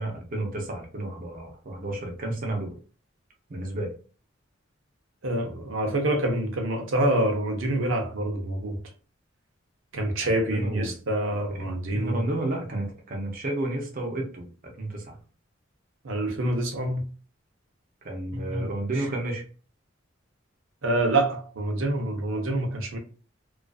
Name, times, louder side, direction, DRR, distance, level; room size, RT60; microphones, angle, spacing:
voice 1, 0.0-2.8 3.5-3.9 10.2-10.9 11.5-14.5 14.8-15.2 18.0-19.4, right 1 dB, 45° right, 0.6 m, -31 dB
voice 2, 5.2-8.8 9.9-12.2 16.0-17.0 18.3-18.7 20.8-23.0, right 1 dB, 85° right, 0.6 m, -26 dB
2.4 x 2.4 x 2.3 m
head